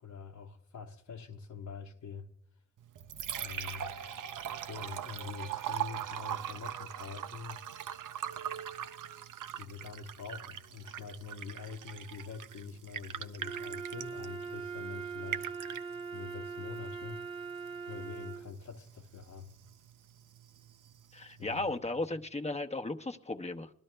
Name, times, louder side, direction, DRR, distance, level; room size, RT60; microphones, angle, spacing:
voice 1, 0.0-2.3 3.4-3.9 4.5-7.6 9.5-15.5 16.1-17.2 17.9-19.5 21.4-21.6, left 6 dB, 75° left, 1.0 m, -45 dB
Liquid, 2.8-21.8, right 10 dB, 80° right, 0.6 m, -42 dB
Wind instrument woodwind instrument, 13.4-18.5, right 5 dB, 20° right, 0.7 m, -41 dB
voice 2, 21.1-23.7, left 2 dB, 20° left, 0.8 m, -35 dB
22.0 x 12.5 x 2.2 m
wide cardioid pair, 95°, 31 cm